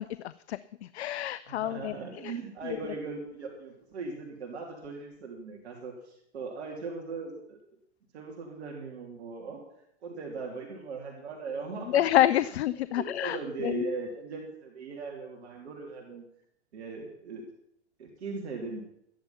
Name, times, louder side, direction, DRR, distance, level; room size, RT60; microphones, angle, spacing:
voice 1, 0.0-1.9 2.2-2.3 11.9-13.9, left 13 dB, 65° left, 16 dB, 0.6 m, -28 dB
voice 2, 1.5-7.6 8.1-12.0 12.9-16.3 16.7-17.5 18.0-18.8, right 4 dB, 70° right, 0 dB, 3.0 m, -39 dB
13.5 x 10.5 x 5.7 m, 0.73 s
hypercardioid pair, 115°, 34 cm